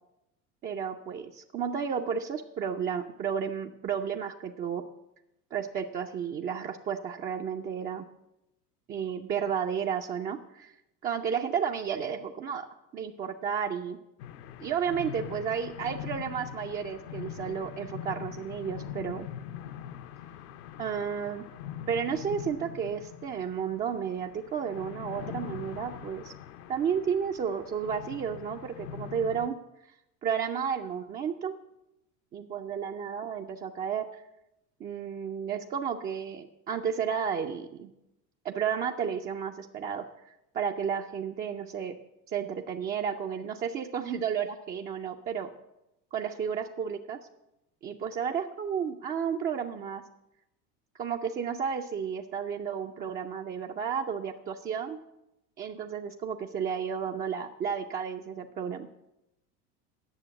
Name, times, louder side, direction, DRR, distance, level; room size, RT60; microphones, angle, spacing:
voice 1, 0.6-4.8 5.5-8.0 8.9-10.7 11.0-12.7 12.9-14.0 14.6-19.3 20.8-21.4 21.9-26.3 26.7-29.6 30.2-31.5 32.3-34.2 34.8-37.9 38.4-40.1 40.5-42.0 42.3-45.5 46.1-47.2 47.8-50.0 51.0-55.0 55.6-58.9, right 7 dB, 20° right, 2 dB, 0.4 m, -32 dB
sound 1, 14.2-29.5, left 9 dB, 65° left, 0.8 m, -42 dB
9.2 x 6.9 x 7.6 m, 0.89 s
hypercardioid pair, 80°, 49 cm